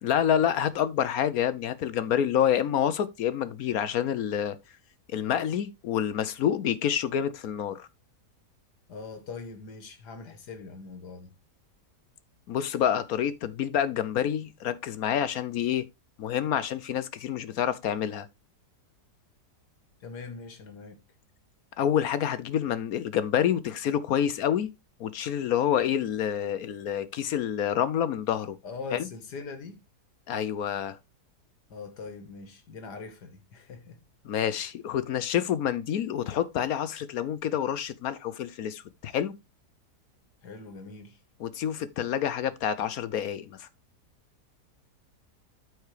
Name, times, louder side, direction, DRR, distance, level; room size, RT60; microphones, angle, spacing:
voice 1, 0.0-4.6 5.1-7.9 12.5-15.8 16.2-18.3 21.8-24.7 25.0-28.6 28.9-29.1 30.3-31.0 34.2-39.3 41.4-43.7, left 9 dB, 70° left, 1.1 m, -28 dB
voice 2, 8.9-11.3 20.0-21.0 28.6-29.8 31.7-34.0 40.4-41.2, left 4 dB, 85° left, 1.9 m, -42 dB
13.5 x 4.7 x 3.2 m
omnidirectional pair, 1.7 m